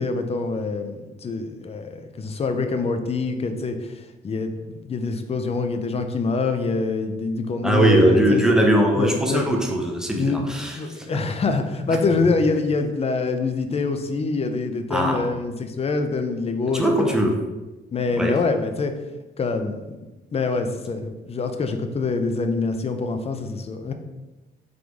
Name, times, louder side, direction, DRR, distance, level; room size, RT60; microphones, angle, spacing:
voice 1, 0.0-8.4 8.9-9.5 10.1-17.2 17.9-18.9 19.4-19.8 20.3-23.9, left 3 dB, 30° left, 7 dB, 0.5 m, -25 dB
voice 2, 7.6-11.1 11.9-12.0 14.9-15.2 16.7-17.3 18.2-18.3, right 1 dB, 5° right, 1 dB, 0.7 m, -20 dB
3.8 x 3.2 x 3.5 m, 1.1 s
cardioid pair, 90°, 20 cm